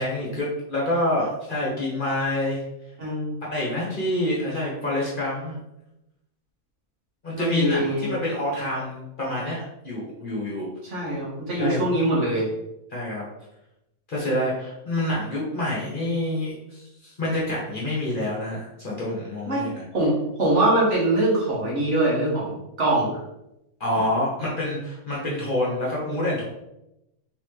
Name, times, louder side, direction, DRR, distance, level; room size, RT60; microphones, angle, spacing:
voice 1, 0.0-2.6 3.5-5.6 7.2-9.6 9.8-10.7 11.5-11.8 12.9-13.2 14.1-19.9 23.8-26.4, left 1 dB, 40° left, -5 dB, 1.2 m, -27 dB
voice 2, 3.0-3.4 7.3-8.1 10.8-12.4 19.5-19.6 19.9-20.1 20.4-23.2, right 1 dB, 55° right, -5 dB, 1.6 m, -23 dB
4.1 x 3.6 x 3.2 m, 0.88 s
omnidirectional pair, 1.5 m